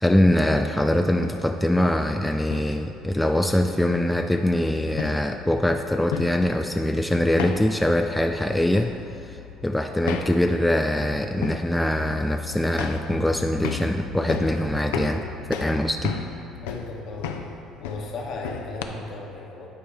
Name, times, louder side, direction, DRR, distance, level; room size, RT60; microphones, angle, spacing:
voice 1, 0.0-8.9 9.2-15.2 15.6-16.2, left 1 dB, 5° left, 5 dB, 0.4 m, -23 dB
sound 1, 1.1-18.8, left 6 dB, 75° left, 0.4 m, -36 dB
voice 2, 16.6-17.4 17.8-19.7, left 3 dB, 55° left, 0 dB, 1.2 m, -36 dB
9.2 x 4.6 x 4.2 m, 2.9 s
hypercardioid pair, 60°, 0 cm